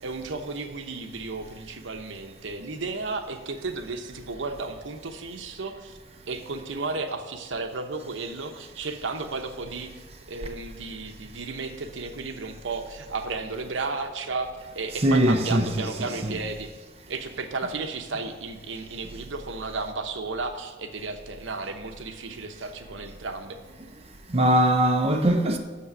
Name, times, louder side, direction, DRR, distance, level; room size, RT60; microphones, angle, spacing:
voice 1, 0.0-6.0 6.3-23.6, right 3 dB, 70° right, 0.8 m, -34 dB
voice 2, 15.0-15.9 16.2-16.3 24.3-25.6, right 1 dB, 30° right, 0.7 m, -21 dB
8.4 x 6.7 x 6.1 m
head